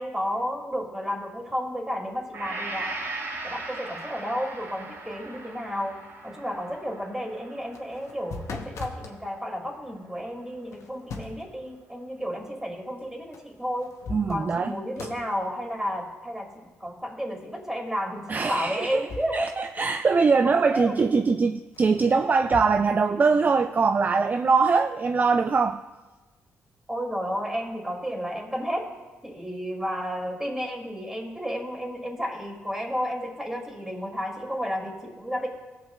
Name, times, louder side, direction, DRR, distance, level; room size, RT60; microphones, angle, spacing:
voice 1, 0.0-3.1 3.4-6.0 6.2-13.9 14.3-19.9 20.4-20.9 26.9-28.9 29.2-35.5, equal, 10° right, 0 dB, 2.7 m, -32 dB
Gong, 2.3-10.4, right 2 dB, 60° right, 3.1 m, -39 dB
sound 1, 7.7-9.2 10.7-11.5 13.3-13.4 13.8-14.7 15.0-15.3 18.4-19.5 19.8-19.9 21.7-22.7, left 4 dB, 65° left, 1.0 m, -39 dB
voice 2, 14.1-14.7 18.3-19.0 19.3-25.8, right 4 dB, 35° right, 9 dB, 0.3 m, -22 dB
17.5 x 7.3 x 2.4 m, 1.2 s
supercardioid pair, 60°, 5 cm